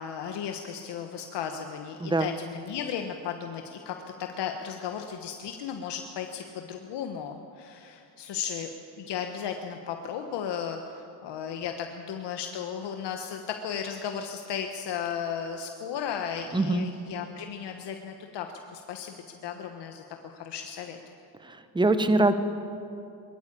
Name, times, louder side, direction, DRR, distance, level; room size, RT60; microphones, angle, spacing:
voice 1, 0.0-8.7 9.0-18.5 18.7-19.2 19.4-21.0, left 8 dB, 60° left, 4 dB, 1.4 m, -35 dB
voice 2, 2.0-2.3 16.5-16.9 21.4-22.3, right 2 dB, 10° right, 10 dB, 1.1 m, -23 dB
22.0 x 13.5 x 8.6 m, 2.6 s
cardioid pair, 110°, 47 cm